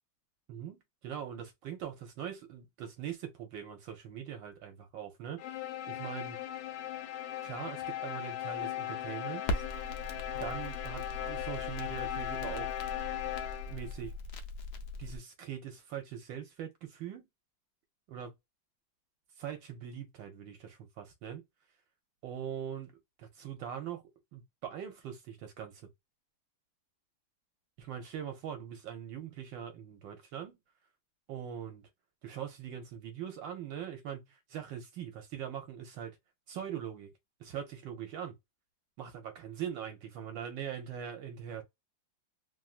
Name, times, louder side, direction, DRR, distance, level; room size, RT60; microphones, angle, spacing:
voice 1, 0.5-6.4 7.4-9.6 10.3-12.7 13.7-14.1 15.0-17.3 18.1-18.3 19.4-21.4 22.2-22.9 23.2-24.0 24.3-25.9 27.8-30.6 31.3-31.9 32.2-36.2 36.5-37.1 37.4-38.3 39.0-41.6, right 9 dB, 75° right, 1.4 m, -42 dB
sound 1, 5.4-13.9, left 12 dB, 85° left, 1.4 m, -38 dB
Crackle, 9.4-15.2, left 2 dB, 70° left, 1.1 m, -40 dB
3.3 x 2.5 x 2.4 m
omnidirectional pair, 2.1 m